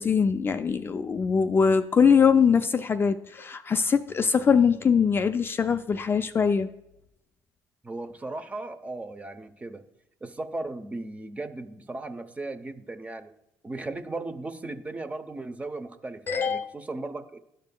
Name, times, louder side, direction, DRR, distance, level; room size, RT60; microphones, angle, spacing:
voice 1, 0.0-6.7 16.3-16.7, left 6 dB, 35° left, 9 dB, 0.4 m, -22 dB
voice 2, 7.8-9.8 10.2-13.3 13.6-17.4, right 2 dB, 20° right, 9 dB, 0.7 m, -36 dB
12.0 x 5.2 x 2.2 m, 0.84 s
supercardioid pair, 85°, 7 cm